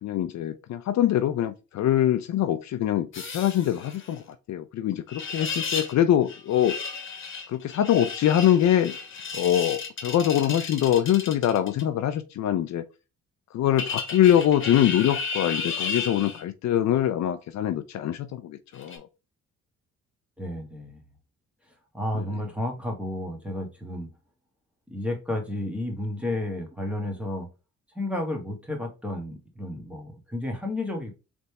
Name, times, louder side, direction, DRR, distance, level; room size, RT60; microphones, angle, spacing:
voice 1, 0.0-6.8 7.5-9.0 9.3-12.9 13.5-19.1 22.1-22.3, left 11 dB, 65° left, 0.6 m, -24 dB
sound 1, 3.1-4.2 5.1-5.9 6.3-11.8 13.8-16.4 18.7-19.0, left 5 dB, 40° left, 1.4 m, -34 dB
voice 2, 20.4-21.0 21.9-24.1 24.9-27.5 27.9-31.1, left 1 dB, 5° right, 1.9 m, -32 dB
4.0 x 3.5 x 3.3 m
cardioid pair, 90°, 30 cm